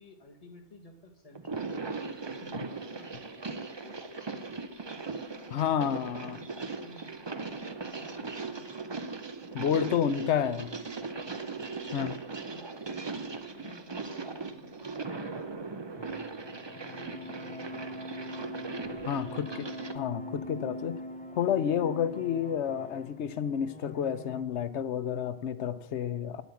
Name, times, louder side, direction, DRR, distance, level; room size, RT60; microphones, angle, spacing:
voice 1, 0.0-5.5 6.0-9.0 9.7-11.6 12.0-18.3 18.8-19.7, left 2 dB, 35° left, 3 dB, 1.7 m, -53 dB
sound 1, 1.3-20.0, right 4 dB, 30° right, 0.7 m, -39 dB
voice 2, 5.5-6.4 9.5-10.7 11.9-12.1 19.1-19.7 19.9-21.0 21.4-26.4, left 8 dB, 80° left, 14 dB, 1.0 m, -30 dB
sound 2, 16.0-24.4, left 1 dB, 10° left, 0.9 m, -43 dB
9.2 x 8.1 x 8.3 m, 0.90 s
omnidirectional pair, 1.1 m